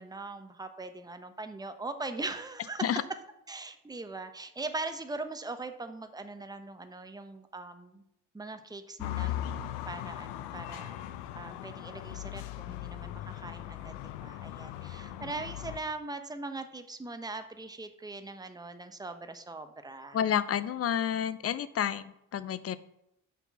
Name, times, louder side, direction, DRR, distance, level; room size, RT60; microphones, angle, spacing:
voice 1, 0.0-2.9 3.5-8.0 8.3-13.9 14.2-20.2, right 3 dB, 10° right, 8 dB, 1.0 m, -41 dB
sound 1, 9.0-15.8, left 13 dB, 70° left, 0.8 m, -39 dB
voice 2, 20.1-22.8, left 9 dB, 35° left, 16 dB, 0.7 m, -30 dB
6.0 x 5.7 x 7.1 m, 0.81 s
hypercardioid pair, 60°, 42 cm